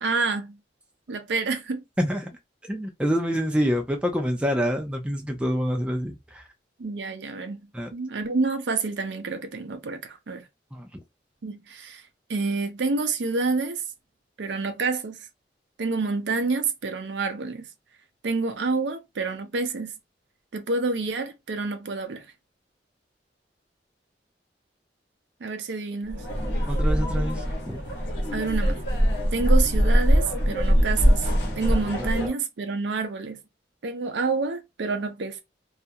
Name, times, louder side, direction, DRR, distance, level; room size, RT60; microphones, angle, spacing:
voice 1, 0.0-0.6 1.1-1.8 6.8-7.6 7.9-10.5 11.4-13.8 14.4-15.3 15.8-17.7 18.2-19.9 20.5-22.3 25.4-26.3 28.3-28.8 29.3-31.3 31.6-33.4 33.8-35.4, right 4 dB, 80° right, 0.5 m, -28 dB
voice 2, 2.7-6.4 7.7-7.9 10.7-10.9 26.7-27.8 32.0-32.1, equal, 5° right, 0.4 m, -26 dB
sound 1, 26.1-32.3, equal, 70° left, 0.9 m, -22 dB
2.3 x 2.0 x 2.7 m
head